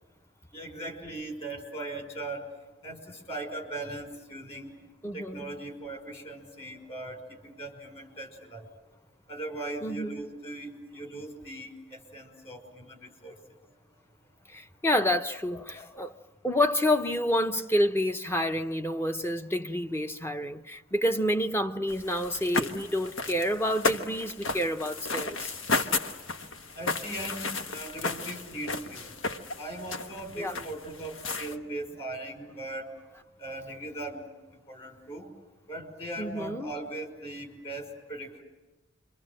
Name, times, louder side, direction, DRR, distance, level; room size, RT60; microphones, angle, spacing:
voice 1, 0.5-2.5 2.8-4.7 5.1-8.7 9.3-13.3 15.8-15.9 25.7-25.9 26.8-29.2 29.6-32.9 33.4-34.3 34.7-35.3 35.7-38.4, right 1 dB, 30° left, 5.5 m, -39 dB
voice 2, 5.0-5.5 9.8-10.1 14.5-16.2 16.4-25.5 30.4-30.6 36.2-36.7, left 1 dB, 10° left, 0.8 m, -28 dB
sound 1, 21.9-31.6, left 3 dB, 85° left, 1.3 m, -33 dB
28.0 x 24.5 x 7.7 m
head